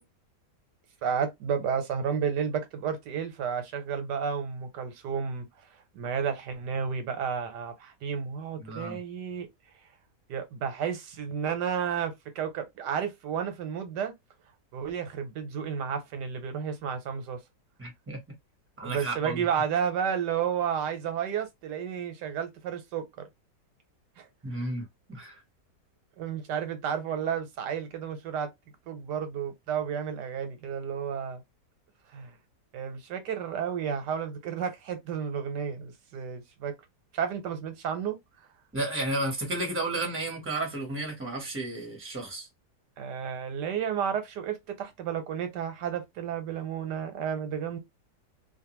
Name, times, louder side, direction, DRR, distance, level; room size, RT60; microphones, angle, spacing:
voice 1, 1.0-5.4 5.9-9.5 10.3-14.1 14.7-17.4 18.8-23.3 24.2-24.7 26.2-28.5 28.9-31.4 32.1-32.4 32.7-36.8 37.1-38.2 43.0-47.8, right 7 dB, 80° right, 1.4 m, -32 dB
voice 2, 8.6-9.0 17.8-18.2 18.8-19.4 24.4-25.3 38.7-42.5, right 2 dB, 10° right, 0.9 m, -32 dB
2.6 x 2.5 x 2.9 m
omnidirectional pair, 1.8 m